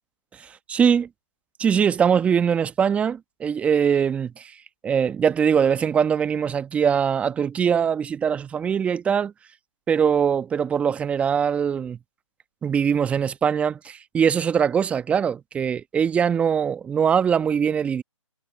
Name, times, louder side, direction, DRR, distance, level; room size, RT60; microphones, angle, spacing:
voice 1, 0.4-1.1 1.6-4.5 4.8-9.3 9.9-12.0 12.6-18.0, right 7 dB, 10° right, 1.0 m, -22 dB
figure-of-eight pair, 145°, 16 cm